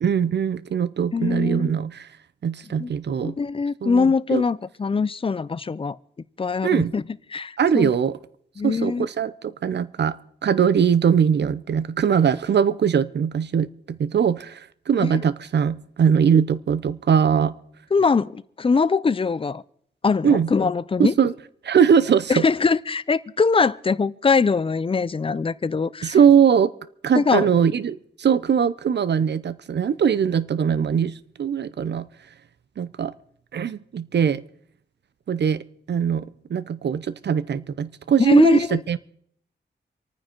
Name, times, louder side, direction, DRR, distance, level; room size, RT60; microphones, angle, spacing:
voice 1, 0.0-2.1 2.4-3.4 3.8-4.4 6.6-6.9 7.6-8.1 8.6-17.5 20.2-20.5 21.0-21.3 21.6-22.4 26.0-26.7 27.0-32.1 32.8-33.1 33.5-34.4 35.3-39.0, right 7 dB, 65° right, 0.7 m, -21 dB
voice 2, 1.1-1.7 2.8-2.9 3.2-6.0 6.4-7.0 7.3-7.9 8.6-9.1 15.0-15.2 17.9-19.6 20.0-21.1 22.3-26.2 27.2-27.5 38.2-38.8, left 4 dB, 30° left, 0.5 m, -22 dB
27.0 x 9.5 x 4.5 m
wide cardioid pair, 130°, 19 cm